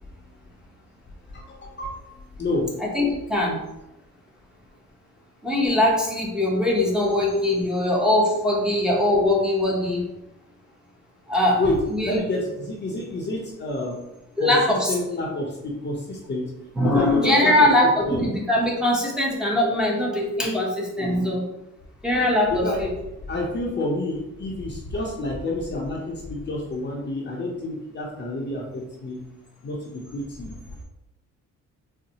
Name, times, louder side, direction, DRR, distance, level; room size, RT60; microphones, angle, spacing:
voice 1, 1.3-2.0 2.4-2.7 11.6-11.8 12.0-14.0 14.4-14.5 14.9-16.5 16.8-17.7 18.0-18.2 22.5-22.8 23.3-29.2 29.6-30.5, left 2 dB, 35° left, -1 dB, 0.7 m, -29 dB
voice 2, 2.8-3.6 5.4-10.0 11.3-11.6 11.9-12.2 14.4-15.0 16.8-21.4 22.0-22.9, left 1 dB, ahead, -4 dB, 0.8 m, -21 dB
4.0 x 2.1 x 2.7 m, 0.89 s
cardioid pair, 90°, 30 cm